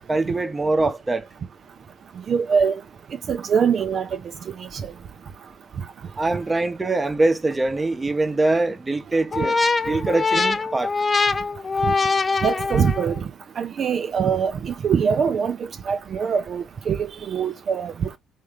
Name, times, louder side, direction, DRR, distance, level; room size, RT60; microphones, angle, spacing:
voice 1, 0.1-1.2 6.2-9.6 9.8-10.9, right 2 dB, 25° right, 0.9 m, -23 dB
voice 2, 2.3-2.8 3.3-4.1 4.8-4.9 11.9-12.0 12.4-13.3 13.6-15.6 15.9-18.2, right 6 dB, 50° right, 0.5 m, -23 dB
sound 1, 9.3-13.2, left 4 dB, 35° left, 0.5 m, -23 dB
3.4 x 2.7 x 3.4 m
hypercardioid pair, 50°, 0 cm